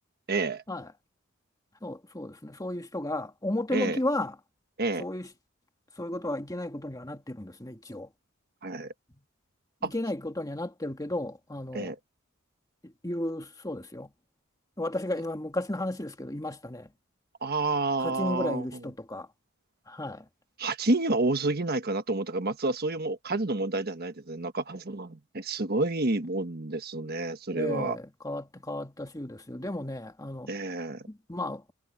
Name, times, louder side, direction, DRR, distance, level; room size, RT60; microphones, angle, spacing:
voice 1, 0.3-0.6 3.7-4.0 4.8-5.0 8.6-8.9 9.8-9.9 11.7-12.0 17.4-18.6 20.6-28.0 30.5-31.0, right 2 dB, 50° right, 1.3 m, -29 dB
voice 2, 1.8-4.4 5.0-5.3 6.0-8.1 9.8-11.9 12.8-14.1 14.8-16.9 18.0-19.3 19.9-20.3 27.5-30.5 31.1-31.7, left 1 dB, 15° left, 1.9 m, -34 dB
head